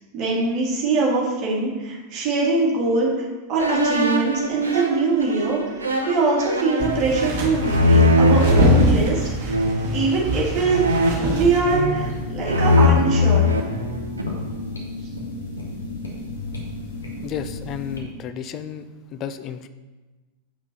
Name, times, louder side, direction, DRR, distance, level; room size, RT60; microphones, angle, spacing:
voice 1, 0.1-5.6 6.1-9.5 9.9-10.8 11.2-13.5, right 3 dB, 35° right, -4 dB, 2.0 m, -22 dB
sound 1, 3.6-8.8 9.5-10.0 10.7-12.1 12.4-14.4, left 2 dB, 75° right, 0.7 m, -20 dB
sound 2, 6.8-12.2, right 3 dB, 50° right, 1.5 m, -26 dB
sound 3, 11.9-18.0, left 2 dB, 75° left, 1.4 m, -33 dB
voice 2, 17.2-19.7, left 8 dB, 35° left, 11 dB, 0.4 m, -33 dB
8.1 x 5.8 x 2.9 m, 1.2 s
figure-of-eight pair, 90°, 0 cm